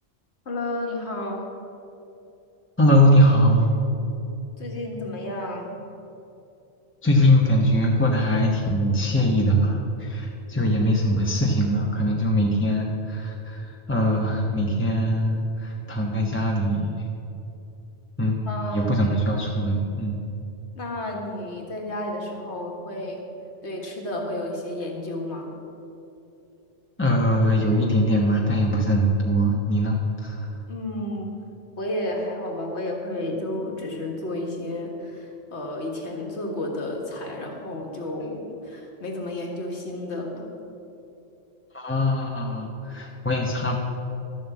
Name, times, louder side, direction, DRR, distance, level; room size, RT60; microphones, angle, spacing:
voice 1, 0.5-1.5 4.6-5.8 18.5-19.2 20.8-23.2 23.6-25.5 30.7-31.3 31.8-40.5, left 1 dB, 85° left, 1 dB, 2.0 m, -31 dB
voice 2, 2.8-3.7 7.0-16.9 18.2-18.5 18.7-20.2 27.0-30.5 41.7-43.8, equal, 10° left, -2 dB, 1.0 m, -21 dB
12.5 x 7.4 x 7.1 m, 2.8 s
omnidirectional pair, 1.1 m